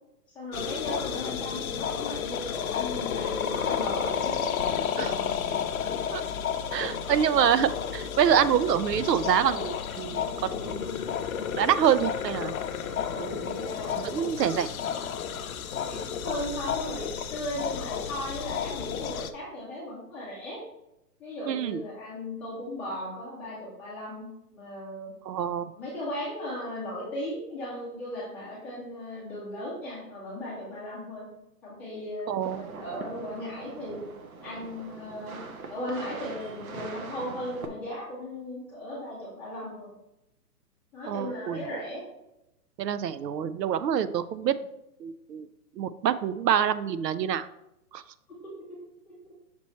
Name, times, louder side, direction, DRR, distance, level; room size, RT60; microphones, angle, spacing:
voice 1, 0.3-4.9 5.8-5.9 13.4-15.1 15.8-20.6 21.2-25.1 25.7-31.3 31.6-34.0 34.4-39.9 40.9-42.0 44.4-44.5 49.0-49.3, left 1 dB, 5° left, -10 dB, 0.7 m, -37 dB
sound 1, 0.5-19.3, left 8 dB, 60° left, 0.6 m, -32 dB
voice 2, 6.7-10.3 10.6-10.9 11.5-12.5 13.2-13.6 14.0-14.7 21.5-21.8 25.3-25.7 32.3-32.7 41.1-41.6 42.8-44.5 45.0-45.5 45.8-47.5 47.9-48.0, right 9 dB, 85° right, 14 dB, 0.6 m, -26 dB
sound 2, 32.4-37.7, right 4 dB, 60° right, 1.1 m, -42 dB
6.1 x 4.3 x 4.2 m, 0.86 s
hypercardioid pair, 160°, 48 cm